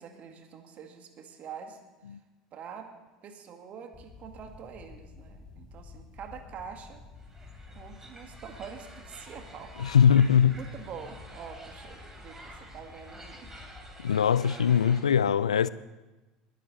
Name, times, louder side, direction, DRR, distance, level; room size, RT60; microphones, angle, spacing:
voice 1, 0.0-1.8 2.1-2.2 2.5-2.9 3.2-7.0 7.7-9.7 10.5-13.5, right 7 dB, 45° right, 1.9 m, -45 dB
sound 1, 3.9-13.9, left 4 dB, 25° left, 2.4 m, -50 dB
sound 2, 7.2-15.0, right 1 dB, 15° right, 3.1 m, -50 dB
voice 2, 9.8-10.6 14.0-15.7, left 8 dB, 85° left, 0.3 m, -21 dB
21.0 x 9.3 x 4.2 m
hypercardioid pair, 75°, 3 cm